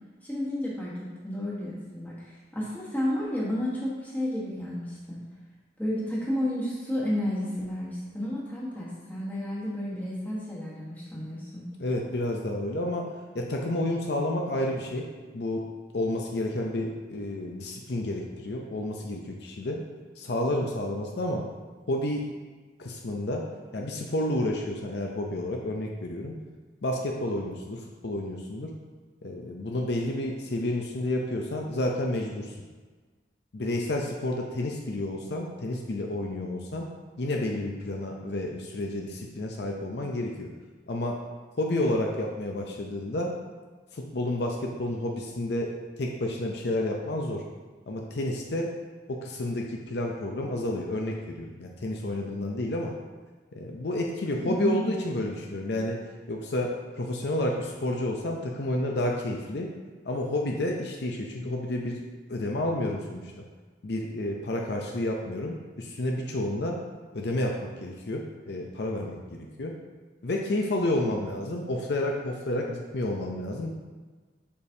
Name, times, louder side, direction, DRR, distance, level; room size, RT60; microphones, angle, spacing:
voice 1, 0.2-5.2 5.8-11.6 54.4-54.8, left 1 dB, 10° left, -7 dB, 1.3 m, -32 dB
voice 2, 11.8-13.1 13.3-15.1 15.3-15.7 15.9-19.8 20.2-21.5 21.9-22.2 22.8-23.4 23.7-26.4 26.8-28.7 29.2-32.6 33.5-36.9 37.2-40.5 40.9-41.2 41.6-43.3 43.9-45.7 46.0-47.4 47.9-48.7 49.1-52.9 53.5-56.0 56.3-59.7 60.0-62.0 62.3-63.3 63.8-66.8 67.1-69.7 70.2-73.7, left 1 dB, 60° left, 0 dB, 0.6 m, -30 dB
6.7 x 5.1 x 2.7 m, 1.4 s
head